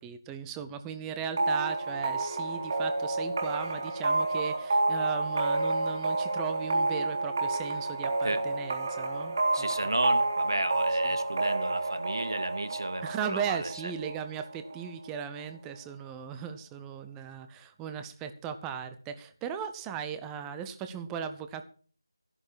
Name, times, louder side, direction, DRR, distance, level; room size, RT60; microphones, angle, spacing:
voice 1, 0.0-9.9 11.0-11.1 13.0-21.6, right 7 dB, 5° right, 9 dB, 0.6 m, -37 dB
sound 1, 1.4-14.9, right 2 dB, 35° right, 3.3 m, -30 dB
voice 2, 9.5-13.9, right 1 dB, 70° right, 11 dB, 2.3 m, -33 dB
14.0 x 11.0 x 4.5 m, 0.42 s
figure-of-eight pair, 165°, 2 cm